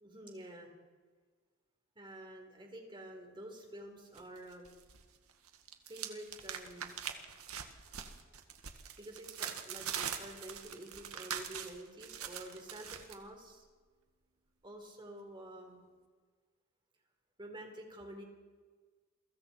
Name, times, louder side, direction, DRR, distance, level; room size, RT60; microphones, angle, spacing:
voice 1, 0.0-0.7 2.0-4.7 5.9-7.0 9.0-13.7 14.6-15.8 17.4-18.2, right 1 dB, 20° right, 2 dB, 4.2 m, -49 dB
sound 1, 4.1-5.0 5.3-13.2, right 8 dB, 90° right, 2.0 m, -43 dB
29.0 x 23.5 x 4.6 m, 1.5 s
head